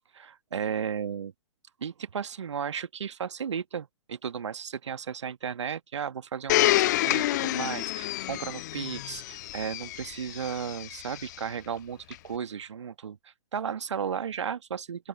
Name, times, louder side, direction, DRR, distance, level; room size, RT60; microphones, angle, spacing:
voice 1, 0.1-1.3 1.8-6.6 7.0-15.1, right 7 dB, 65° right, 1.8 m, -34 dB
Domestic sounds home sounds, 6.5-11.3 12.1-12.2, left 16 dB, 35° left, 0.4 m, -28 dB
open air
figure-of-eight pair, 120°, 16 cm